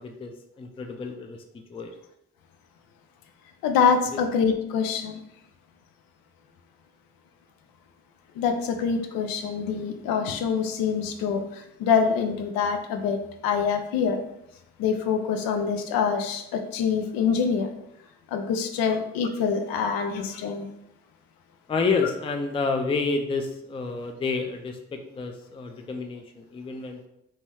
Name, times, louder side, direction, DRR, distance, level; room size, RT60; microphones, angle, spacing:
voice 1, 0.0-1.9 4.1-4.2 21.7-27.0, left 4 dB, 15° left, 4 dB, 0.4 m, -29 dB
voice 2, 3.6-5.2 8.4-13.2 13.4-14.2 14.8-17.7 18.3-20.7, left 6 dB, 85° left, 6 dB, 0.5 m, -25 dB
2.8 x 2.2 x 3.3 m, 0.80 s
supercardioid pair, 55°, 34 cm